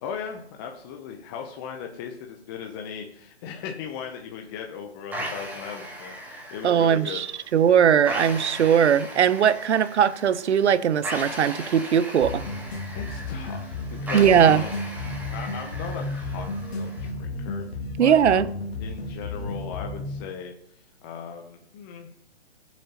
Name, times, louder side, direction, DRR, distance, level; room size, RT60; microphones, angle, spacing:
voice 1, 0.0-7.2 12.9-14.8 15.3-17.7 18.0-18.4 18.8-20.5 21.0-22.1, left 7 dB, 20° left, 0.7 m, -38 dB
sound 1, 5.1-17.1, right 1 dB, 5° right, 1.5 m, -38 dB
voice 2, 6.6-7.3 7.5-12.4 14.1-14.6 18.0-18.5, right 8 dB, 80° right, 0.7 m, -19 dB
sound 2, 12.2-20.2, left 2 dB, 65° left, 2.2 m, -33 dB
21.0 x 7.3 x 2.9 m
hypercardioid pair, 150°, 33 cm